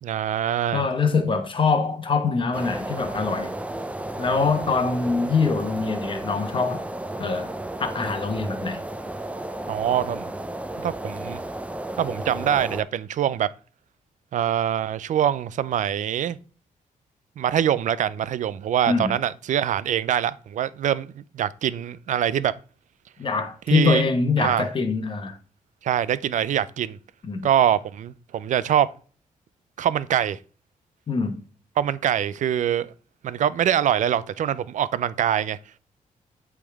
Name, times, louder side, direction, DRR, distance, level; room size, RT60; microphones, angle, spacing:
voice 1, 0.0-0.8 9.7-10.3 10.8-11.4 12.0-13.5 14.3-16.4 17.4-22.5 23.7-24.0 24.4-24.7 25.8-27.0 27.4-28.9 29.8-30.4 31.8-32.9 33.2-35.6, right 10 dB, 65° right, 0.4 m, -24 dB
voice 2, 0.7-3.5 4.2-6.8 7.2-7.5 7.8-8.8 18.9-19.1 23.2-25.4 27.2-27.5 31.1-31.4, left 4 dB, 40° left, 1.1 m, -24 dB
sound 1, 2.5-12.8, right 1 dB, 10° right, 0.5 m, -33 dB
8.3 x 3.6 x 3.5 m
cardioid pair, 120°, 14 cm